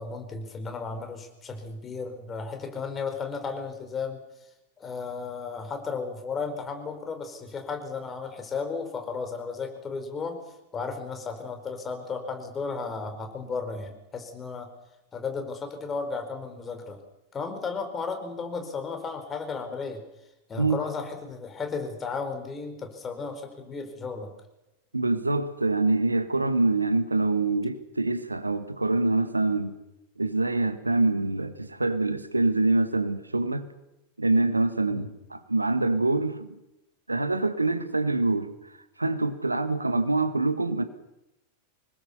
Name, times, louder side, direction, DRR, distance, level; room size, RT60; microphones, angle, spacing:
voice 1, 0.0-4.2 4.8-10.4 10.7-14.7 15.1-17.0 17.3-20.0 20.5-24.3 34.9-35.1, left 4 dB, 20° left, 4.6 m, -34 dB
voice 2, 24.9-29.8 30.2-33.7 34.2-36.5 37.1-38.5 39.0-40.8, right 2 dB, 80° right, 1.6 m, -25 dB
25.5 x 20.5 x 7.0 m
figure-of-eight pair, 90°, 0 cm